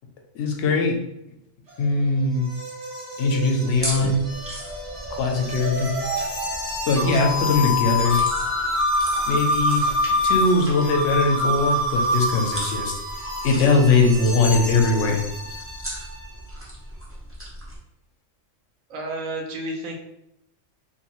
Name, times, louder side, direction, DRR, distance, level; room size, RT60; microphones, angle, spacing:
voice 1, 0.3-0.9 1.8-2.5 3.2-4.2 5.1-5.9 6.2-6.3 6.9-8.2 9.3-9.9 10.2-13.0 13.4-15.2, left 3 dB, 70° left, 2 dB, 0.9 m, -21 dB
sound 1, 1.7-16.3, left 1 dB, 65° right, 1.3 m, -27 dB
sound 2, 3.7-17.8, right 1 dB, 20° right, 0.4 m, -38 dB
voice 2, 18.9-20.0, right 2 dB, 85° right, 1 dB, 1.0 m, -31 dB
2.7 x 2.3 x 2.9 m, 0.84 s
omnidirectional pair, 1.4 m